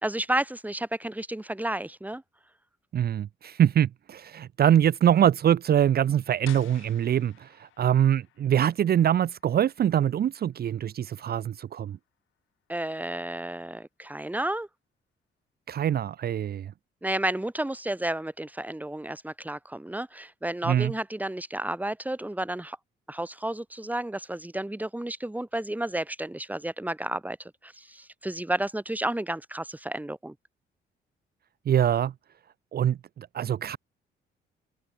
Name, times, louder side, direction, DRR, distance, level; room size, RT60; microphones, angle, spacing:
voice 1, 0.0-2.2 12.7-14.7 17.0-22.8 23.1-30.3, right 1 dB, 10° right, 3.4 m, -32 dB
voice 2, 2.9-12.0 15.7-16.7 20.7-20.9 31.7-32.1 32.7-33.8, right 10 dB, 50° right, 0.7 m, -24 dB
sound 1, 6.4-12.1, left 14 dB, 85° left, 4.9 m, -53 dB
open air
cardioid pair, 90°, 20 cm